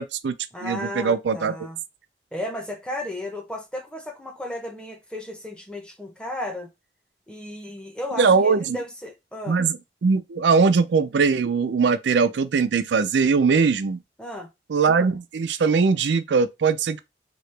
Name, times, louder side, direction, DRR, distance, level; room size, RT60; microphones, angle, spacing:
voice 1, 0.0-0.3 0.6-1.6 8.2-8.8 9.5-14.0 14.7-17.0, right 5 dB, 90° right, 0.4 m, -21 dB
voice 2, 0.5-1.8 2.3-6.7 7.3-9.6 14.2-14.5, left 1 dB, 5° left, 0.7 m, -34 dB
3.0 x 2.8 x 3.2 m
head